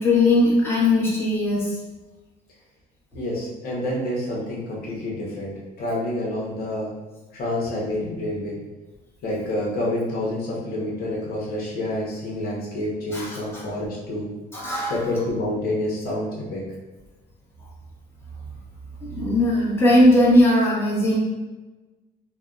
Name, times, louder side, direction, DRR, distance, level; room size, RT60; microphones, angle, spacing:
voice 1, 0.0-1.8 13.1-13.6 14.5-15.1 19.0-21.2, left 1 dB, 15° left, -7 dB, 1.0 m, -19 dB
voice 2, 3.1-6.9 7.3-8.6 9.2-14.3 14.9-16.6, left 1 dB, 65° left, -4 dB, 0.9 m, -28 dB
3.3 x 2.1 x 2.4 m, 1.2 s
cardioid pair, 110°, 17 cm